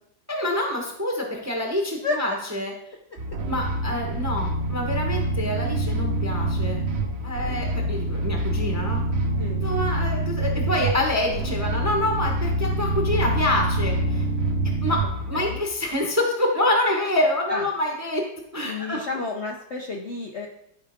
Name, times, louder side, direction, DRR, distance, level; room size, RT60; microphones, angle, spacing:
voice 1, 0.3-2.7 3.5-6.8 7.2-9.0 9.6-14.2 14.8-15.0 15.3-18.2 18.5-19.1, left 1 dB, 10° right, 1 dB, 0.8 m, -26 dB
sound 1, 3.2-15.6, right 1 dB, 50° right, 0.8 m, -26 dB
voice 2, 18.6-20.5, left 3 dB, 55° left, 0 dB, 0.8 m, -30 dB
12.0 x 4.7 x 3.6 m, 0.74 s
omnidirectional pair, 2.0 m